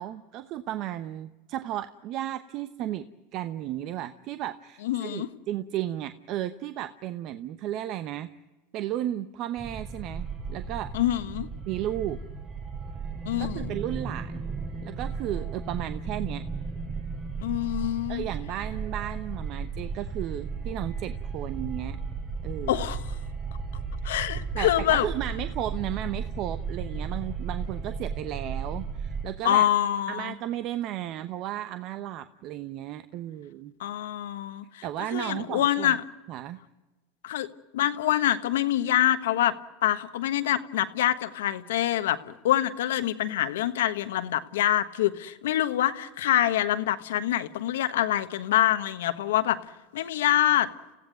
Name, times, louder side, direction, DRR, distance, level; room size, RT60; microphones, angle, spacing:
voice 1, 0.0-3.1 3.3-8.3 8.7-10.9 11.7-12.2 13.4-14.5 14.8-16.4 18.1-22.0 22.4-22.9 24.0-24.1 24.5-29.7 30.1-33.7 34.8-35.9 36.3-36.6, right 12 dB, 50° right, 11 dB, 0.9 m, -34 dB
voice 2, 4.8-5.3 10.9-11.5 13.2-13.7 17.4-18.2 22.7-23.0 24.0-25.1 29.4-30.3 33.8-34.8 35.1-36.0 37.2-37.5 37.7-39.6 39.8-42.2 42.4-49.6 49.9-50.7, left 12 dB, 80° left, 10 dB, 1.3 m, -25 dB
sound 1, 9.6-29.2, right 4 dB, 30° right, 6.9 m, -35 dB
28.0 x 16.0 x 9.3 m, 1.2 s
supercardioid pair, 110°, 0 cm